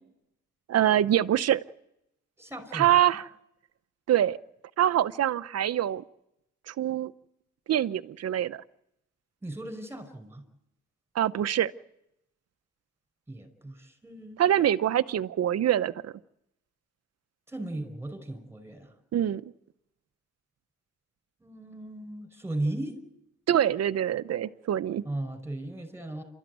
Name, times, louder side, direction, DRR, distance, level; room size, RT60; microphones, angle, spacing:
voice 1, 0.7-1.6 2.7-3.3 4.1-4.4 4.8-6.0 6.7-7.1 7.7-8.6 11.1-11.7 14.4-16.1 19.1-19.4 23.5-25.0, right 11 dB, 55° right, 14 dB, 0.9 m, -24 dB
voice 2, 2.4-3.0 9.4-10.4 13.3-14.5 17.5-18.9 21.4-22.9 25.1-26.2, right 1 dB, 10° right, 9 dB, 5.4 m, -36 dB
28.0 x 13.5 x 9.4 m, 0.84 s
cardioid pair, 90°, 30 cm